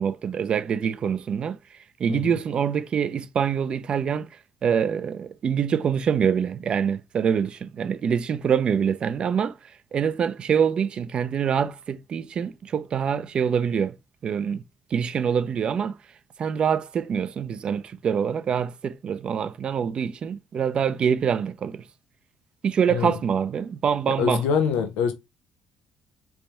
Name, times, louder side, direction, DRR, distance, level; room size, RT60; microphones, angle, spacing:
voice 1, 0.0-1.6 2.0-4.3 4.6-9.6 9.9-14.0 14.2-14.6 14.9-16.0 16.4-21.8 22.6-24.4, right 7 dB, 50° right, 0.5 m, -25 dB
voice 2, 24.2-25.1, left 7 dB, 90° left, 0.6 m, -24 dB
3.4 x 3.3 x 4.1 m
cardioid pair, 90°, 2 cm